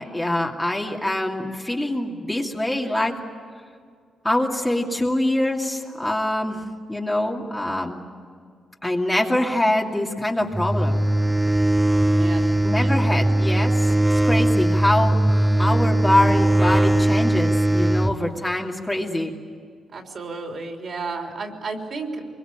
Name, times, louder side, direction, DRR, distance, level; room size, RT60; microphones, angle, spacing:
voice 1, 0.0-3.2 4.2-6.6 6.9-8.0 8.8-11.0 12.6-13.9 14.2-15.2 15.6-19.3, left 1 dB, 10° left, 0 dB, 2.6 m, -24 dB
sound 1, 10.5-18.1, right 1 dB, 10° right, 0.9 m, -19 dB
voice 2, 11.9-13.0 19.9-22.3, right 3 dB, 50° right, 2 dB, 3.8 m, -33 dB
24.5 x 23.0 x 9.0 m, 2.1 s
cardioid pair, 95°, 0 cm